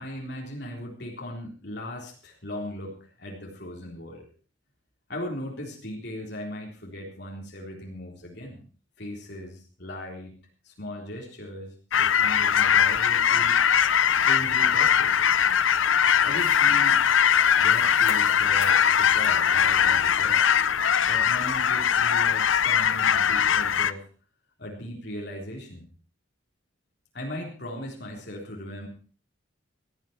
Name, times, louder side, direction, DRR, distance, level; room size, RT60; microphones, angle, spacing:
voice 1, 0.0-4.2 5.1-8.6 9.0-10.4 10.6-13.6 14.1-15.3 16.2-17.0 17.6-20.4 21.1-24.1 24.6-25.9 27.1-28.9, left 1 dB, 55° left, 0 dB, 3.8 m, -38 dB
sound 1, 11.9-23.9, left 8 dB, 80° left, 0.7 m, -21 dB
18.0 x 12.5 x 4.5 m, 0.40 s
head